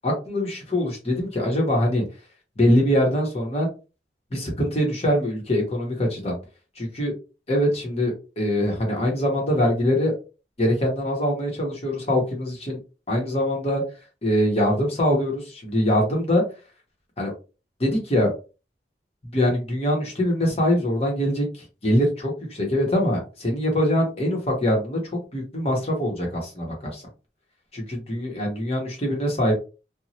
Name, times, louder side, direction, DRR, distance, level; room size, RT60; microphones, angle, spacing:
voice 1, 0.0-2.0 2.6-3.7 4.3-6.4 6.8-7.1 7.5-10.1 10.6-12.8 13.1-13.8 14.2-16.4 17.2-17.3 17.8-18.3 19.3-25.0 25.3-27.0 27.7-29.5, equal, 35° left, 0 dB, 1.0 m, -23 dB
3.0 x 2.3 x 2.7 m, 0.32 s
head